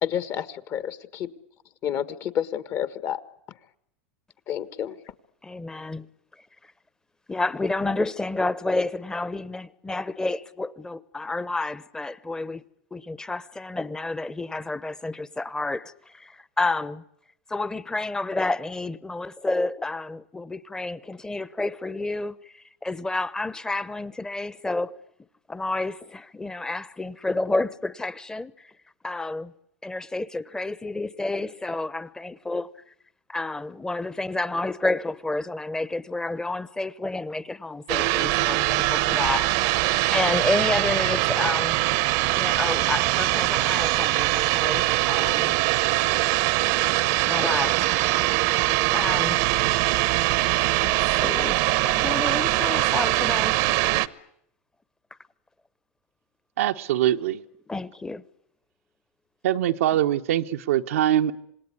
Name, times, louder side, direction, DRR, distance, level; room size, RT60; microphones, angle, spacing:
voice 1, 0.0-1.3 1.8-3.2 4.5-5.0, left 9 dB, 45° left, 1.6 m, -29 dB
voice 2, 5.4-6.1 7.3-12.6 12.9-17.0 17.5-25.0 25.5-28.7 29.0-29.5 29.8-32.7 33.3-39.8 40.1-41.8 42.3-45.6 47.3-47.9 48.9-49.4 49.9-50.0 50.8-53.8 57.7-58.2, left 2 dB, 10° left, 1.0 m, -30 dB
sound 1, 37.9-54.1, right 19 dB, 60° right, 1.0 m, -22 dB
voice 3, 56.6-57.4 59.4-61.3, right 12 dB, 85° right, 1.0 m, -23 dB
27.0 x 19.5 x 9.7 m
supercardioid pair, 115°, 7 cm